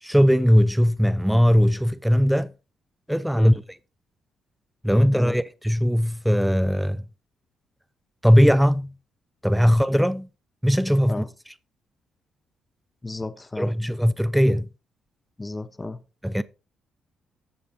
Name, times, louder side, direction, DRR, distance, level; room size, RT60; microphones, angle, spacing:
voice 1, 0.0-2.5 3.1-3.6 4.8-7.0 8.2-8.9 9.4-10.3 10.6-11.5 13.6-14.7 16.2-16.4, equal, ahead, 0.5 m, -19 dB
voice 2, 13.0-13.8 15.4-16.0, left 2 dB, 20° left, 1.0 m, -33 dB
14.0 x 8.5 x 2.7 m
cardioid pair, 90°, 0 cm